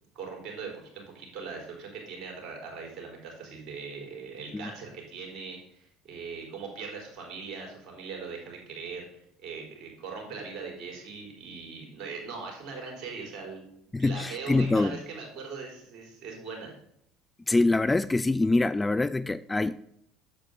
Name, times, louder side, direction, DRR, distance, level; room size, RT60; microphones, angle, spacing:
voice 1, 0.1-16.8, right 5 dB, 50° right, 4.0 m, -40 dB
voice 2, 13.9-15.0 17.5-19.7, left 2 dB, 15° left, 0.3 m, -25 dB
8.5 x 7.8 x 3.8 m
hypercardioid pair, 70°, 0 cm